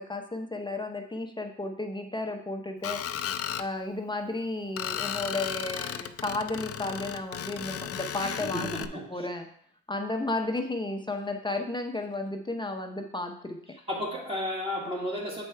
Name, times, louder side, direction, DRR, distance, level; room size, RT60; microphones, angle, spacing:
voice 1, 0.0-3.0 3.6-9.5 9.9-13.6, left 2 dB, 15° left, 4 dB, 0.7 m, -33 dB
Screech, 2.8-3.7 4.8-8.9, left 9 dB, 50° left, 0.5 m, -34 dB
voice 2, 8.2-9.3 13.9-15.4, left 1 dB, 20° right, -4 dB, 1.5 m, -33 dB
7.7 x 4.5 x 4.5 m, 0.64 s
cardioid pair, 90°, 30 cm